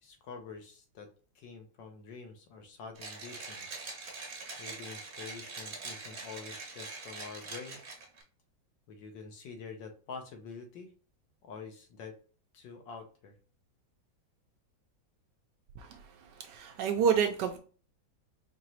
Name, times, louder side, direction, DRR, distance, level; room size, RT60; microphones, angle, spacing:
voice 1, 0.0-3.8 4.2-7.8 8.9-10.9 11.4-12.2 12.5-13.3, left 5 dB, 70° left, 4 dB, 1.4 m, -47 dB
Mechanisms, 3.0-8.2, right 3 dB, 45° right, 1.0 m, -43 dB
voice 2, 16.4-17.6, right 7 dB, 75° right, 6 dB, 1.1 m, -28 dB
4.7 x 2.9 x 2.9 m, 0.39 s
omnidirectional pair, 2.1 m